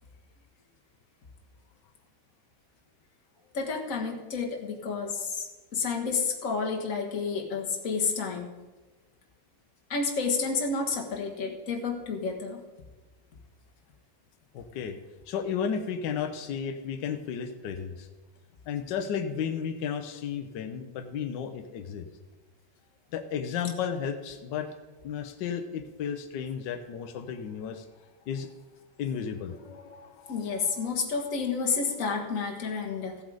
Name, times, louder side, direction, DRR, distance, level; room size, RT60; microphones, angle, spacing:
voice 1, 3.5-8.5 9.9-12.6 30.3-33.2, left 4 dB, 45° left, 0 dB, 1.8 m, -30 dB
voice 2, 14.5-15.0 15.3-18.1 18.7-22.1 23.1-24.7 25.0-27.8 28.3-28.5 29.0-30.9, left 7 dB, 70° left, 7 dB, 1.4 m, -33 dB
15.0 x 7.8 x 4.9 m, 1.2 s
omnidirectional pair, 2.1 m